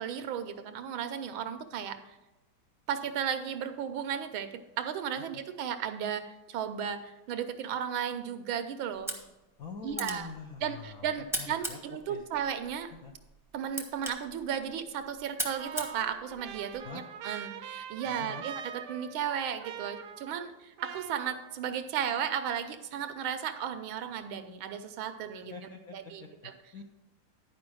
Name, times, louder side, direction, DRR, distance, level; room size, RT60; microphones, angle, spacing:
voice 1, 0.0-2.2 2.9-9.1 9.8-10.3 10.6-12.9 13.5-18.6 18.9-25.5 25.9-26.5, right 8 dB, 85° right, 9 dB, 1.6 m, -35 dB
sound 1, 8.9-16.9, right 1 dB, ahead, 0.7 m, -41 dB
voice 2, 9.6-11.8 12.1-12.2 12.9-13.1 16.8-17.0 18.0-18.4 25.5-26.8, left 5 dB, 55° left, 1 dB, 1.1 m, -45 dB
Trumpet, 15.6-20.5 20.8-21.8, right 8 dB, 70° right, 1.1 m, -44 dB
10.5 x 5.1 x 6.2 m, 1.0 s
omnidirectional pair, 2.1 m